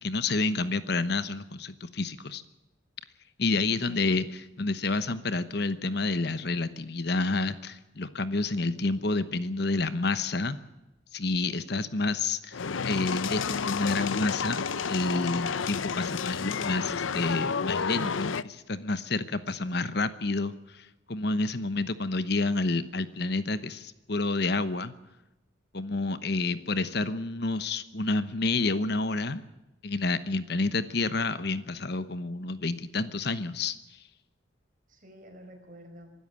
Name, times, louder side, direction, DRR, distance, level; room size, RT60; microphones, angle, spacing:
voice 1, 0.0-2.4 3.4-10.6 11.1-14.6 14.9-18.3 18.7-24.9 25.7-29.4 29.8-33.8, left 3 dB, 55° left, 13 dB, 1.0 m, -29 dB
voice 2, 3.7-4.1 11.3-11.7 19.5-20.0 26.2-26.7 34.9-36.1, equal, 40° right, 4 dB, 5.1 m, -50 dB
sound 1, 12.5-18.4, left 5 dB, 80° left, 0.7 m, -30 dB
24.5 x 13.0 x 8.7 m, 0.99 s
head